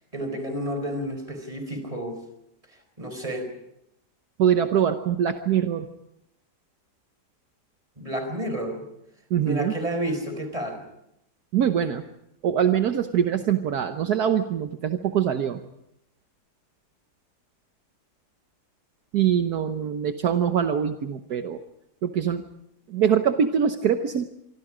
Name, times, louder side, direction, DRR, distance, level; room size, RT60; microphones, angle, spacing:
voice 1, 0.1-2.2 3.0-3.5 8.0-8.8 9.4-10.8, right 1 dB, 20° right, 7 dB, 4.7 m, -30 dB
voice 2, 4.4-5.9 9.3-9.7 11.5-12.0 12.4-15.6 19.1-21.6 22.0-22.4 22.9-24.3, right 8 dB, 70° right, 7 dB, 1.5 m, -23 dB
26.0 x 25.0 x 5.0 m, 0.79 s
omnidirectional pair, 1.8 m